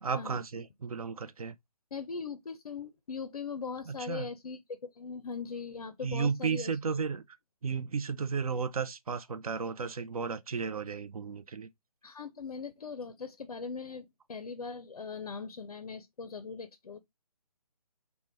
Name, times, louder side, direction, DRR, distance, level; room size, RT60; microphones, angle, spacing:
voice 1, 0.0-1.5 3.9-4.3 6.0-7.2 7.6-11.7, right 5 dB, 70° right, 0.4 m, -33 dB
voice 2, 1.9-6.7 12.0-17.0, left 5 dB, 75° left, 0.4 m, -40 dB
2.9 x 2.1 x 3.3 m
figure-of-eight pair, 145°, 19 cm